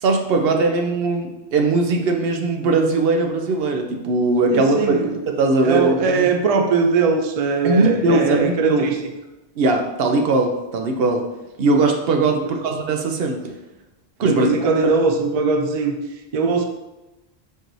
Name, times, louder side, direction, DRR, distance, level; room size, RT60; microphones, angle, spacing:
voice 1, 0.0-6.3 7.6-8.9 9.6-11.2 11.6-13.5 14.2-14.7, right 3 dB, 65° right, 3 dB, 0.8 m, -20 dB
voice 2, 4.5-5.1 5.6-9.0 12.4-12.7 14.2-15.9 16.3-16.6, right 4 dB, 50° right, 4 dB, 0.4 m, -20 dB
4.5 x 4.5 x 2.6 m, 1.0 s
omnidirectional pair, 1.1 m